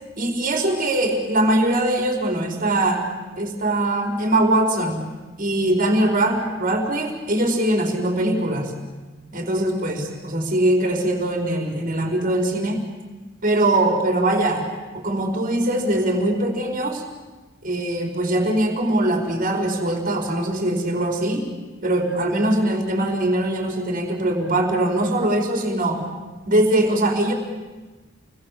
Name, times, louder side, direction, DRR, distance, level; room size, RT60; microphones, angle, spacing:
voice 1, 0.2-3.1 3.4-5.0 5.4-8.7 9.3-12.8 13.4-14.6 14.9-17.0 17.6-21.5 21.8-26.0 26.5-27.3, right 1 dB, 45° right, 2 dB, 4.7 m, -21 dB
29.0 x 21.5 x 7.6 m, 1.2 s
head